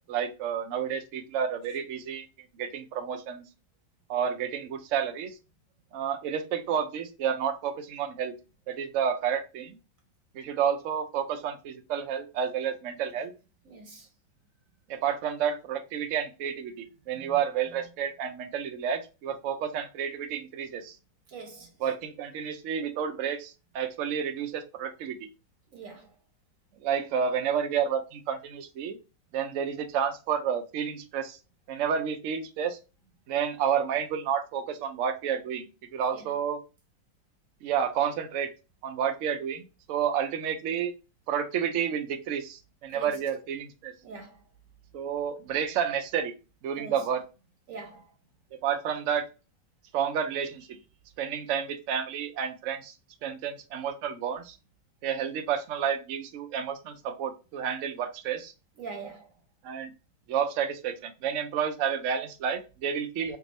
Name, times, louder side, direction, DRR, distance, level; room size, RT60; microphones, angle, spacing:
voice 1, 0.1-2.3 2.6-3.4 4.1-5.4 5.9-8.3 8.7-9.8 10.3-13.3 14.9-21.0 21.8-25.3 26.8-29.0 29.3-31.4 31.7-32.8 33.3-35.7 35.9-36.6 37.6-38.5 38.8-40.9 41.3-43.9 44.9-46.3 46.6-47.2 48.6-49.2 49.9-50.7 51.2-52.9 53.2-54.6 55.0-58.5 59.6-59.9 60.3-63.4, right 8 dB, 90° right, 0.6 m, -30 dB
voice 2, 13.7-14.1 17.2-17.4 21.3-21.7 25.7-26.1 36.1-36.3 42.9-43.1 44.0-44.4 46.8-47.0 47.7-48.1 58.8-59.3, right 4 dB, 60° right, 0.9 m, -43 dB
3.4 x 2.6 x 3.0 m
omnidirectional pair, 2.0 m